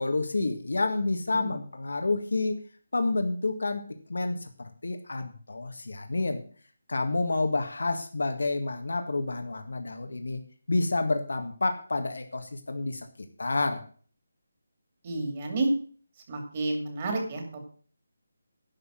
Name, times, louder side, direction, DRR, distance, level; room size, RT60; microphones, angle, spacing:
voice 1, 0.0-2.6 2.9-3.8 4.1-6.4 6.9-10.4 10.7-13.1 13.4-13.8, left 3 dB, 85° left, 6 dB, 1.7 m, -29 dB
voice 2, 15.0-15.7 16.3-17.4, right 2 dB, 25° right, 4 dB, 2.5 m, -30 dB
11.0 x 5.9 x 7.5 m, 0.42 s
hypercardioid pair, 175°, 0 cm